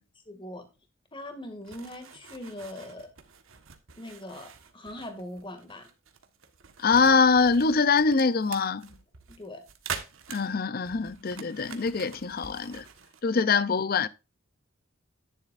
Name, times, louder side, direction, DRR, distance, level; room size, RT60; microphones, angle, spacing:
voice 1, 0.3-0.7 1.1-3.1 4.0-5.9 9.3-9.6 13.3-13.4, left 1 dB, 25° left, 2.2 m, -41 dB
sound 1, 1.6-13.2, right 6 dB, 90° right, 1.5 m, -45 dB
voice 2, 6.8-8.9 10.3-12.9 13.2-14.1, left 4 dB, 45° left, 0.6 m, -24 dB
10.5 x 10.5 x 2.5 m
head